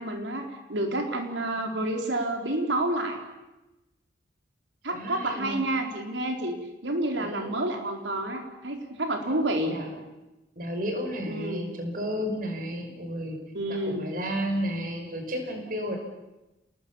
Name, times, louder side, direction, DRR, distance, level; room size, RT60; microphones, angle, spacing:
voice 1, 0.0-3.2 4.8-6.6 6.8-9.8 11.3-11.6 13.5-14.0, right 1 dB, 80° right, 3 dB, 4.3 m, -29 dB
voice 2, 4.9-5.6 7.2-7.6 9.7-10.0 10.6-13.4 13.7-16.0, equal, 45° right, 4 dB, 5.4 m, -32 dB
29.0 x 20.0 x 7.2 m, 1.0 s
head